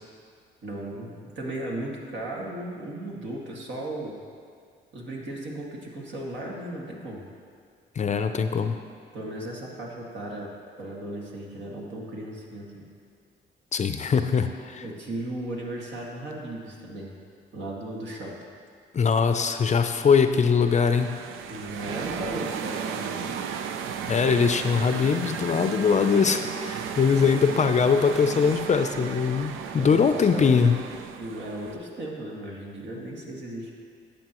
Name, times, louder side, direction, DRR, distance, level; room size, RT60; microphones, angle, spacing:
voice 1, 0.6-4.2 4.9-7.2 9.1-10.5 10.8-12.9 14.8-17.1 17.5-18.4 21.5-23.4 29.8-30.6 31.2-33.7, right 1 dB, 65° right, -2 dB, 2.0 m, -36 dB
voice 2, 8.0-8.8 13.7-14.8 18.9-21.1 24.1-30.8, left 6 dB, 35° left, 8 dB, 0.5 m, -22 dB
sound 1, 20.4-31.8, right 7 dB, 90° right, 0.5 m, -35 dB
13.0 x 8.6 x 3.0 m, 2.2 s
cardioid pair, 90°, 20 cm